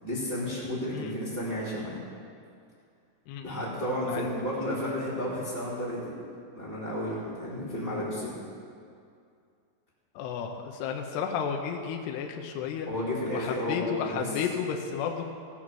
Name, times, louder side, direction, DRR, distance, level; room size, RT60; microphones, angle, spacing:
voice 1, 0.0-2.0 3.4-6.1 6.5-8.3 12.9-14.2, left 1 dB, 15° right, -9 dB, 2.3 m, -32 dB
voice 2, 3.3-3.6 4.1-4.3 10.2-12.9 13.3-15.3, left 7 dB, 75° left, 3 dB, 2.7 m, -32 dB
17.0 x 8.8 x 6.2 m, 2.4 s
omnidirectional pair, 5.2 m